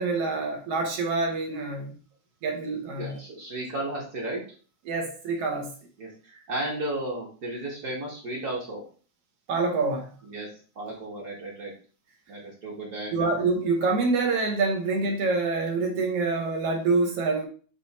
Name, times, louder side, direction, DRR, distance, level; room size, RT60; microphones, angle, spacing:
voice 1, 0.0-1.9 2.4-3.2 4.9-5.7 9.5-10.1 13.1-17.4, right 3 dB, 60° right, 2 dB, 2.0 m, -26 dB
voice 2, 3.0-4.4 6.0-8.8 10.2-10.5 10.7-11.7 12.3-13.3, right 1 dB, 40° right, -3 dB, 1.7 m, -34 dB
8.1 x 2.9 x 4.2 m, 0.39 s
omnidirectional pair, 3.3 m